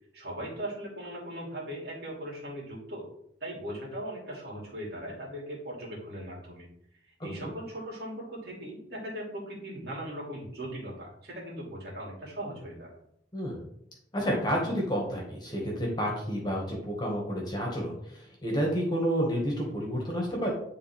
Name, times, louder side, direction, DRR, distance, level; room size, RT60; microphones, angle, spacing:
voice 1, 0.1-3.1 3.4-6.7 7.2-12.9, right 1 dB, 55° right, -4 dB, 3.0 m, -39 dB
voice 2, 13.3-13.7 14.1-20.5, equal, 20° left, -2 dB, 1.9 m, -30 dB
10.5 x 3.9 x 3.6 m, 0.73 s
head